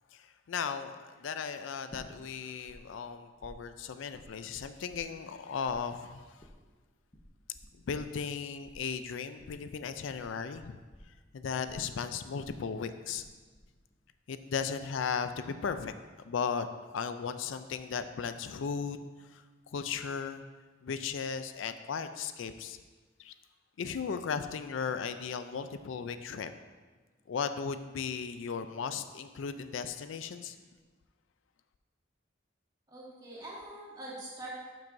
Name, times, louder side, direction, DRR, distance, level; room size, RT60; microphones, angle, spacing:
voice 1, 0.1-6.5 7.9-10.8 11.1-13.2 14.3-15.9 16.2-16.7 16.9-19.4 19.7-20.4 20.8-22.8 23.2-23.3 23.8-26.5 27.3-30.6, left 6 dB, 80° left, 10 dB, 0.4 m, -36 dB
sound 1, 1.9-2.8 3.0-5.4 5.6-13.3 13.5-14.1, equal, 25° left, 0.7 m, -54 dB
voice 2, 32.9-34.5, right 1 dB, 20° right, -7 dB, 2.1 m, -44 dB
11.5 x 6.1 x 2.6 m, 1.4 s
head